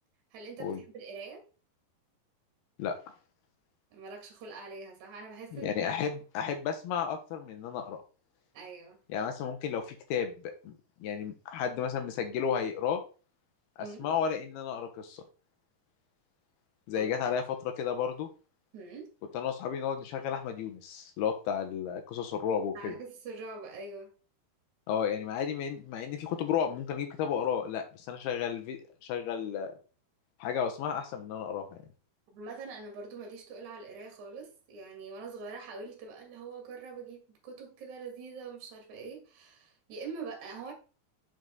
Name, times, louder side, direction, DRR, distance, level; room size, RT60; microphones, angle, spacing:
voice 1, 0.3-1.4 3.9-6.1 8.5-9.0 13.8-14.1 16.9-17.3 18.7-19.1 22.7-24.1 28.4-28.5 32.3-40.7, right 4 dB, 55° right, 3.0 m, -44 dB
voice 2, 5.5-8.0 9.1-10.7 11.0-13.0 13.8-15.2 16.9-18.3 19.3-22.9 24.9-29.7 30.4-31.8, left 7 dB, 80° left, 3.1 m, -33 dB
7.2 x 5.2 x 3.9 m
omnidirectional pair, 4.5 m